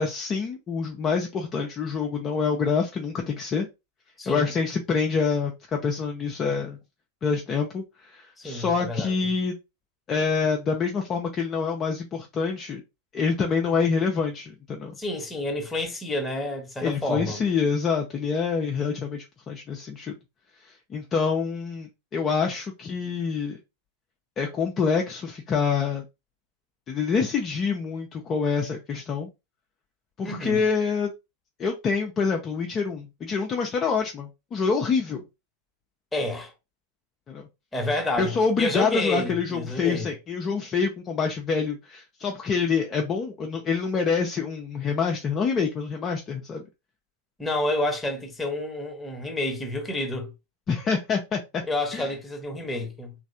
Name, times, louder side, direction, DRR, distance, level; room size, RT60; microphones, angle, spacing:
voice 1, 0.0-3.7 4.3-6.8 7.2-9.6 10.1-12.8 13.1-15.0 16.8-20.1 20.6-23.6 24.4-26.0 26.9-29.3 30.2-31.1 31.6-35.2 37.3-37.5 38.2-46.6 50.7-51.6 51.9-52.1, left 5 dB, 25° left, 0.5 m, -26 dB
voice 2, 4.2-4.5 8.4-9.3 15.0-17.4 30.2-30.6 36.1-36.5 37.7-40.1 47.4-50.3 51.7-53.1, left 1 dB, 10° left, 1.0 m, -29 dB
3.1 x 2.6 x 2.7 m
figure-of-eight pair, 90°, 0 cm